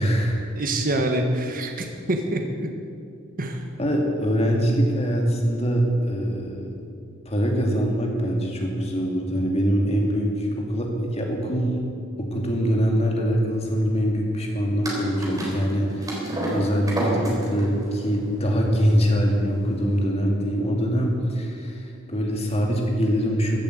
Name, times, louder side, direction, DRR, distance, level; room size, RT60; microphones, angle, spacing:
voice 1, 0.0-0.4 3.8-6.8 7.2-11.8 12.2-23.6, equal, 30° left, 0 dB, 2.5 m, -23 dB
voice 2, 0.6-2.7 3.4-3.6, right 1 dB, 45° right, 4 dB, 1.3 m, -26 dB
sound 1, 14.8-20.0, right 1 dB, 20° right, 3.7 m, -30 dB
15.0 x 8.9 x 8.2 m, 2.3 s
head